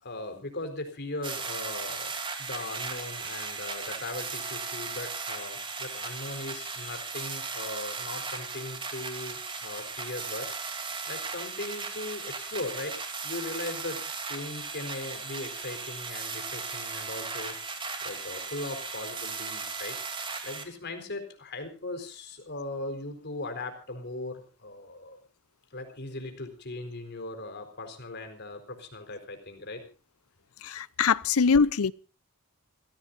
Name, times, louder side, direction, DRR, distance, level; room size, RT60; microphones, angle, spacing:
voice 1, 0.0-2.1 2.4-10.5 11.1-14.0 14.2-20.0 20.4-25.2 25.7-29.8, left 2 dB, 50° left, 4.4 m, -39 dB
sound 1, 1.2-20.6, right 4 dB, 25° right, 3.0 m, -37 dB
voice 2, 30.6-31.9, left 5 dB, 75° left, 0.7 m, -23 dB
28.5 x 16.0 x 2.7 m
head